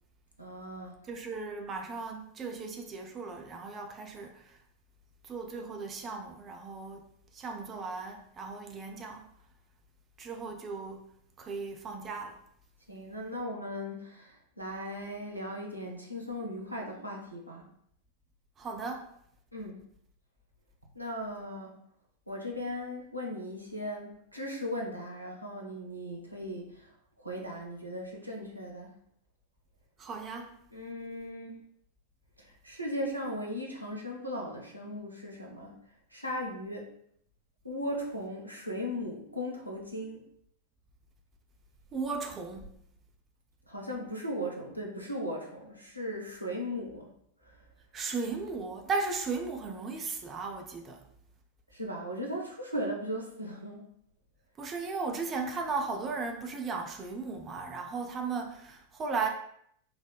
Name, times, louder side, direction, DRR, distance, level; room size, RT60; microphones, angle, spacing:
voice 1, 0.4-0.9 12.9-17.6 19.5-19.8 20.9-21.8 22.3-26.9 27.2-28.9 30.7-31.6 32.4-35.8 36.1-36.9 37.6-40.2 43.7-47.1 47.4-47.6 51.7-53.9, equal, 90° right, 0.6 m, -37 dB
voice 2, 1.1-4.6 5.2-7.0 7.3-9.3 10.2-11.1 11.4-12.4 18.6-19.1 30.0-30.6 41.9-42.7 47.9-51.0 54.6-59.3, right 4 dB, 25° right, 0.4 m, -36 dB
4.0 x 2.1 x 2.3 m
figure-of-eight pair, 90°, 0 cm